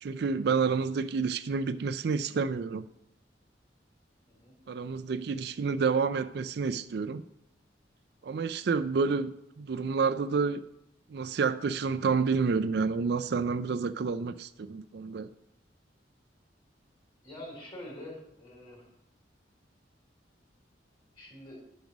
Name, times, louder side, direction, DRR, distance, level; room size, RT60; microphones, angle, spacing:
voice 1, 0.0-2.8 4.7-7.2 8.2-10.6 11.1-15.3, right 5 dB, 60° right, 11 dB, 0.4 m, -29 dB
voice 2, 17.2-18.8 21.2-21.6, left 1 dB, 30° left, -1 dB, 3.5 m, -45 dB
10.5 x 5.3 x 6.0 m, 0.82 s
head